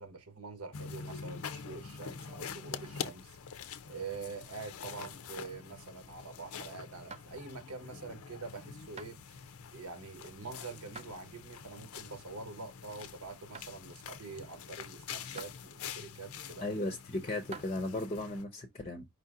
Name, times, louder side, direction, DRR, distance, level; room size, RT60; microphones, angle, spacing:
voice 1, 0.0-3.4 3.9-9.2 9.7-16.7, right 4 dB, 75° right, 1.2 m, -45 dB
sound 1, 0.7-18.4, left 6 dB, 70° left, 0.6 m, -46 dB
sound 2, 7.1-7.7 8.2-8.5 9.0-9.2 9.9-10.3 10.9-11.2 11.6-11.7 12.4-12.5 13.0-13.2 13.5-13.8 14.5-14.6 15.4-15.6 16.4-16.5 17.3-17.7, right 5 dB, 30° right, 0.5 m, -49 dB
voice 2, 16.6-19.0, left 2 dB, 30° left, 0.6 m, -36 dB
5.1 x 2.7 x 3.7 m
head